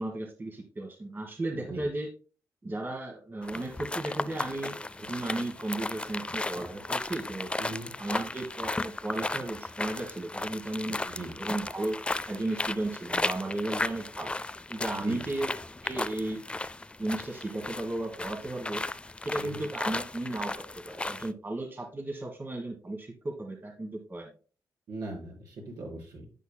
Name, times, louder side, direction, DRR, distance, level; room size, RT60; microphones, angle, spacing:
voice 1, 0.0-2.1 2.6-7.5 8.0-11.0 11.4-14.3 14.7-15.5 15.8-16.4 17.0-18.8 19.2-24.3, right 2 dB, 30° right, 2 dB, 1.5 m, -35 dB
voice 2, 1.5-1.9 7.6-7.9 11.0-11.4 14.9-15.3 19.3-19.7 24.9-26.3, right 2 dB, 80° right, -2 dB, 5.0 m, -40 dB
sound 1, 3.4-21.3, left 2 dB, 15° left, 0.4 m, -35 dB
11.0 x 8.3 x 2.2 m, 0.37 s
cardioid pair, 80°, 7 cm